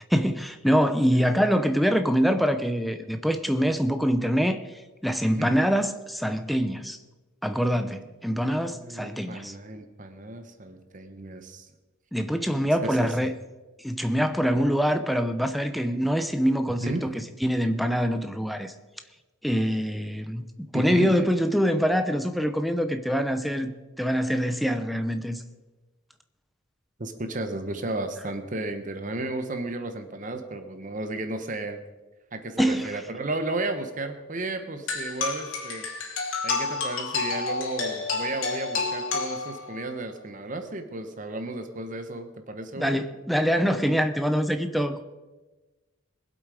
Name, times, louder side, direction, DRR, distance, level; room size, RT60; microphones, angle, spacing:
voice 1, 0.1-4.7 5.0-7.0 7.4-9.5 12.1-13.3 13.8-18.7 19.4-23.7 24.0-25.4 32.6-33.0 42.8-45.0, equal, ahead, 0.7 m, -24 dB
voice 2, 8.7-11.7 12.5-13.1 16.8-17.1 20.7-21.1 27.0-31.8 32.3-35.9 36.4-43.0, right 2 dB, 40° right, 1.0 m, -33 dB
sound 1, 34.9-39.9, left 4 dB, 70° left, 2.8 m, -30 dB
21.0 x 8.1 x 4.9 m
head